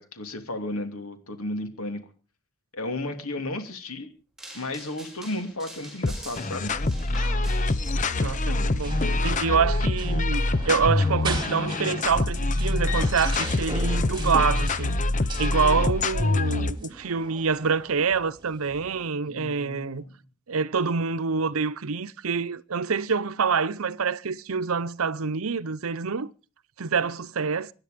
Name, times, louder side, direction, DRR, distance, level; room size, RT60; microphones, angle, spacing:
voice 1, 0.0-2.0 2.7-4.1 4.5-6.7 19.3-20.1, left 1 dB, 85° left, 2.8 m, -33 dB
sound 1, 4.4-8.4, right 1 dB, ahead, 4.7 m, -45 dB
sound 2, 6.0-16.9, left 2 dB, 35° left, 0.8 m, -25 dB
sound 3, 6.1-19.1, right 3 dB, 20° right, 2.5 m, -41 dB
voice 2, 8.2-15.0 15.4-20.0 20.5-26.3 26.8-27.7, right 5 dB, 80° right, 0.7 m, -26 dB
24.5 x 10.5 x 5.1 m
head